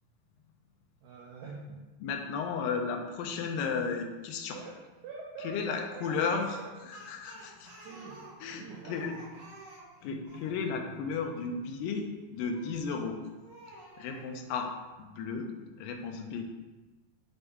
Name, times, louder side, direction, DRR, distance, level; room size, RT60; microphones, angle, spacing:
voice 1, 1.0-1.9 4.5-7.1 7.8-9.0, right 4 dB, 85° right, -2 dB, 1.7 m, -45 dB
voice 2, 2.0-4.6 5.4-6.5 7.1-7.7 8.4-9.1 10.0-13.2 14.0-14.7 15.0-16.4, left 5 dB, 80° left, 3 dB, 2.2 m, -34 dB
Speech, 6.2-10.5 12.5-12.9 13.4-14.3, right 2 dB, 50° right, 2.7 m, -51 dB
6.9 x 4.0 x 3.5 m, 1.2 s
omnidirectional pair, 4.3 m